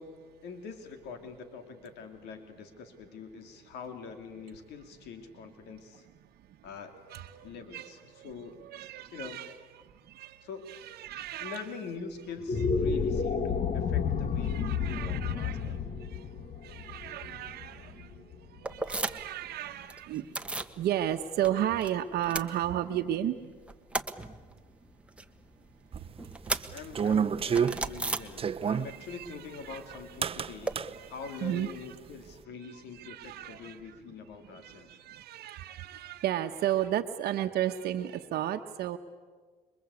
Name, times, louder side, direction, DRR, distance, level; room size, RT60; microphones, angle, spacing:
voice 1, 0.0-6.1 6.6-6.9 7.4-8.6 9.1-9.4 10.4-10.7 11.4-15.8 26.7-35.0, left 5 dB, 80° left, 7 dB, 2.7 m, -44 dB
voice 2, 6.4-6.7 6.9-8.3 8.6-11.7 13.0-13.2 14.4-23.6 26.0-26.1 27.6-28.3 28.6-30.0 30.7-31.9 32.5-34.1 34.4-39.0, right 11 dB, 70° right, 4 dB, 1.1 m, -35 dB
sound 1, 12.3-18.7, left 6 dB, 45° left, 1.7 m, -31 dB
sound 2, 18.6-19.4 19.7-20.8 21.1-21.9 22.2-23.2 23.5-28.9 29.1-30.7, right 2 dB, 5° right, 1.5 m, -37 dB
sound 3, 25.9-28.9 30.2-30.9, right 7 dB, 35° right, 0.9 m, -29 dB
27.0 x 23.0 x 8.4 m, 1.5 s
cardioid pair, 110°, 17 cm